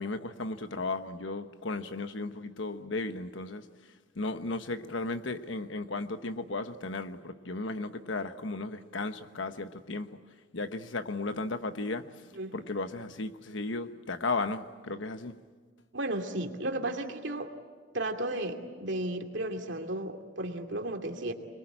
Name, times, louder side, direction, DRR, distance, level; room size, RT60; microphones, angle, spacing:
voice 1, 0.0-3.6 4.1-10.1 10.5-15.4, left 3 dB, 75° left, 9 dB, 1.1 m, -35 dB
voice 2, 15.9-17.5 17.9-21.3, right 1 dB, 65° right, 4 dB, 2.5 m, -34 dB
24.5 x 22.0 x 8.8 m, 1.5 s
head